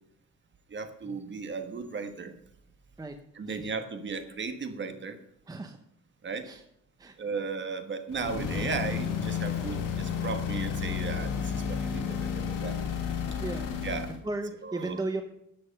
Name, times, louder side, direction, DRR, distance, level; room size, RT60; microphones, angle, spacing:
voice 1, 0.7-2.3 3.4-5.2 6.2-6.5 7.2-12.8 13.8-14.1 14.6-15.0, right 5 dB, 35° right, 8 dB, 1.4 m, -35 dB
voice 2, 5.5-5.8 6.4-6.6 7.0-7.4 9.5-9.8 12.3-12.5 13.4-13.7 14.0-15.2, right 2 dB, 10° right, 6 dB, 0.8 m, -36 dB
sound 1, 8.1-14.2, left 7 dB, 80° left, 2.6 m, -32 dB
12.5 x 7.7 x 5.3 m, 0.76 s
cardioid pair, 140°, 32 cm